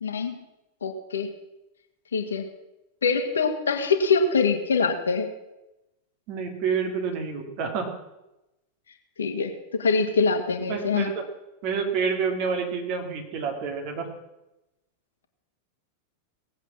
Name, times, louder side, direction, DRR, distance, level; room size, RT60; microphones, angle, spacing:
voice 1, 0.0-0.4 0.8-1.3 2.1-2.5 3.0-5.3 9.2-11.1, left 4 dB, 70° left, 5 dB, 1.9 m, -24 dB
voice 2, 6.3-7.9 10.7-11.2 11.6-14.1, right 5 dB, 45° right, 3 dB, 3.1 m, -28 dB
18.5 x 8.1 x 7.4 m, 0.95 s
figure-of-eight pair, 90°, 0 cm